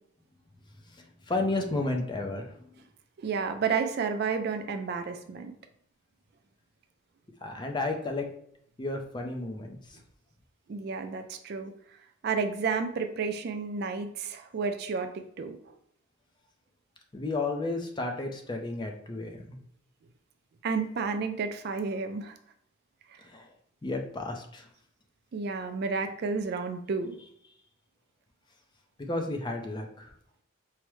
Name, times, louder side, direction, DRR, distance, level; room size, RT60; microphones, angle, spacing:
voice 1, 0.9-2.7 7.4-8.3 8.8-9.8 17.1-19.3 23.2-23.5 23.8-24.7 29.1-30.1, left 2 dB, 20° left, 3 dB, 0.4 m, -32 dB
voice 2, 3.2-5.5 10.7-11.7 12.2-15.7 20.6-22.4 23.1-23.2 25.3-27.2, right 5 dB, 50° right, 7 dB, 0.3 m, -31 dB
4.7 x 2.1 x 3.1 m, 0.66 s
head